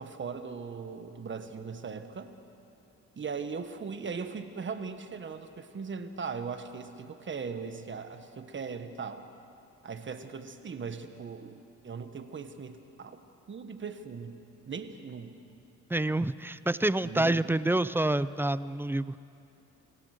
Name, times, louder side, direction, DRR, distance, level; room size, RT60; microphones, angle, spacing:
voice 1, 0.0-2.4 3.2-9.2 9.8-14.4 14.7-15.3 17.0-17.5, right 5 dB, 40° right, 9 dB, 1.4 m, -39 dB
voice 2, 15.9-19.1, right 1 dB, 5° right, 16 dB, 0.4 m, -27 dB
25.0 x 16.5 x 6.6 m, 2.7 s
cardioid pair, 90°, 30 cm